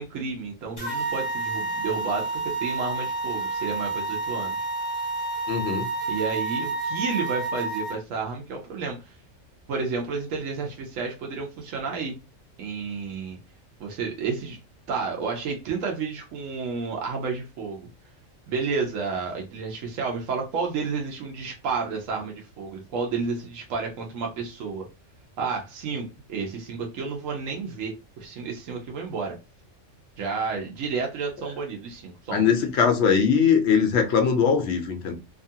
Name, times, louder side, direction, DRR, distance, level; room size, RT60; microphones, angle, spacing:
voice 1, 0.0-4.6 6.1-9.1 9.7-12.1 12.6-13.4 13.8-14.6 14.9-17.9 18.5-24.9 25.4-29.4 30.2-32.5, right 5 dB, 85° right, 1.1 m, -31 dB
sound 1, 0.8-8.0, right 3 dB, 20° left, 1.2 m, -29 dB
voice 2, 5.5-5.9 32.3-35.1, left 6 dB, 65° left, 0.9 m, -21 dB
2.8 x 2.4 x 2.7 m
omnidirectional pair, 1.3 m